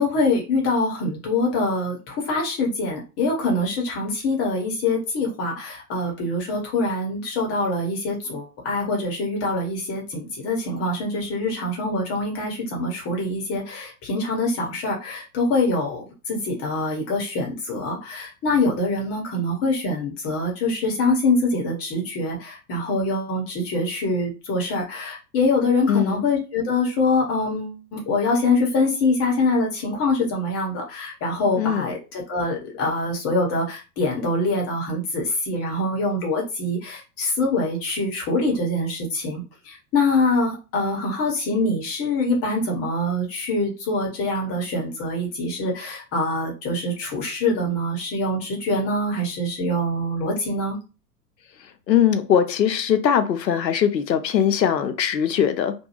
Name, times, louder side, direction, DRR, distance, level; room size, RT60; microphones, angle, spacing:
voice 1, 0.0-50.8, left 2 dB, 30° left, -1 dB, 1.0 m, -24 dB
voice 2, 25.9-26.2 31.6-31.9 51.9-55.7, left 8 dB, 85° left, 9 dB, 0.6 m, -21 dB
2.5 x 2.2 x 2.9 m, 0.31 s
figure-of-eight pair, 95°, 49 cm